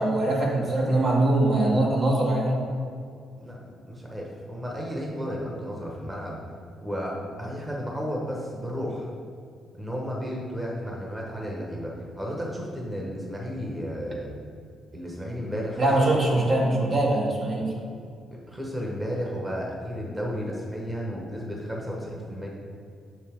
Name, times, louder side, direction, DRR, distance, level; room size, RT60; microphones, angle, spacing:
voice 1, 0.0-2.6 15.8-17.7, right 1 dB, 50° right, -3 dB, 1.5 m, -22 dB
voice 2, 3.8-6.4 6.8-9.1 9.7-14.3 14.9-16.1 18.5-22.5, equal, 15° right, -2 dB, 1.3 m, -33 dB
6.3 x 5.5 x 3.7 m, 2.3 s
cardioid pair, 90°, 0 cm